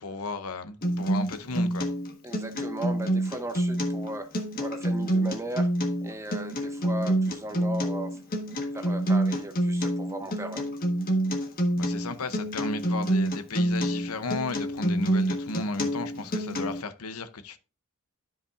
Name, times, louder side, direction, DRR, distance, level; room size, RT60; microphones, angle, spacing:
voice 1, 0.0-1.9 11.8-17.6, left 3 dB, 75° left, 0.8 m, -34 dB
Acoustic guitar, 0.8-16.8, right 1 dB, 40° left, 1.5 m, -27 dB
voice 2, 2.2-4.3 4.6-5.7 6.0-8.2 8.7-10.7, right 1 dB, 15° right, 0.8 m, -37 dB
12.5 x 5.2 x 2.5 m
head